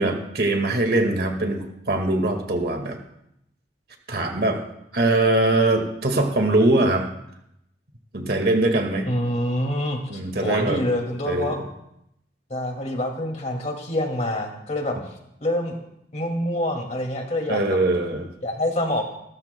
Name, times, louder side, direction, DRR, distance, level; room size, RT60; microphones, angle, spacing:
voice 1, 0.0-3.0 4.1-4.6 4.9-7.1 8.1-9.1 10.1-10.8 11.3-11.6 17.5-18.3, right 2 dB, 60° right, 4 dB, 1.8 m, -22 dB
voice 2, 9.1-10.0 10.4-11.6 12.5-15.0 15.4-15.8 16.1-17.6 18.4-19.0, left 1 dB, 40° left, 2 dB, 2.3 m, -26 dB
26.0 x 13.5 x 2.2 m, 0.79 s
head